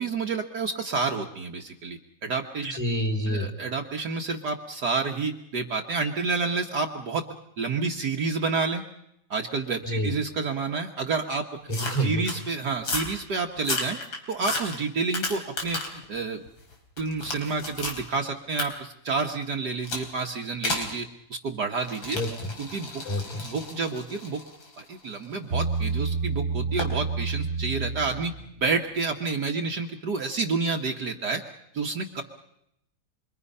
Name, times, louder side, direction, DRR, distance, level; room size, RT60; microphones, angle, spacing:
voice 1, 0.0-2.8 3.2-7.2 7.6-8.8 9.3-11.5 12.0-14.0 14.3-16.4 17.0-22.2 22.6-22.9 23.4-24.4 24.8-28.3 28.6-31.4 31.7-32.2, right 4 dB, 55° right, 2 dB, 1.8 m, -29 dB
voice 2, 2.7-3.5 9.8-10.1 11.7-12.3 22.1-22.5 23.0-23.5, equal, 15° left, 3 dB, 4.7 m, -28 dB
sound 1, 11.7-12.4 12.8-13.2 13.6-16.0 16.5-18.0 18.6-18.7 19.8-20.1 20.6-20.9 21.8-25.8 26.8-27.0, left 2 dB, 75° left, 4.7 m, -33 dB
Bass guitar, 25.5-28.9, right 4 dB, 40° right, 1.8 m, -29 dB
27.0 x 25.0 x 5.6 m, 0.78 s
omnidirectional pair, 2.2 m